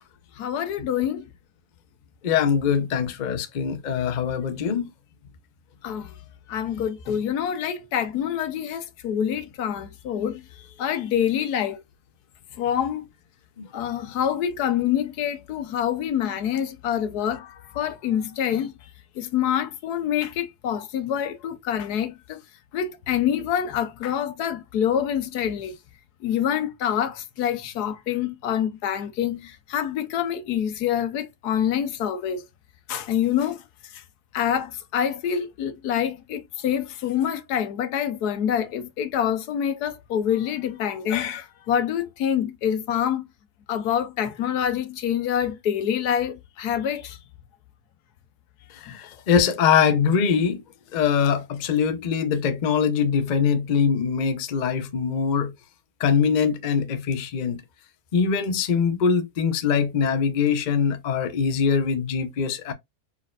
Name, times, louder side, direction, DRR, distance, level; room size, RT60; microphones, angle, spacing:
voice 1, 0.4-1.3 5.8-6.1 6.5-11.8 12.6-13.0 13.7-18.7 19.2-22.4 22.7-25.7 26.2-32.5 32.9-33.6 33.9-34.0 34.3-43.3 43.7-47.2 48.9-49.1, left 9 dB, 85° left, 1.3 m, -26 dB
voice 2, 2.2-4.9 13.6-13.7 48.8-50.6 50.9-55.5 56.0-57.6 58.1-62.7, left 6 dB, 50° left, 0.5 m, -23 dB
4.4 x 4.1 x 2.4 m
omnidirectional pair, 1.6 m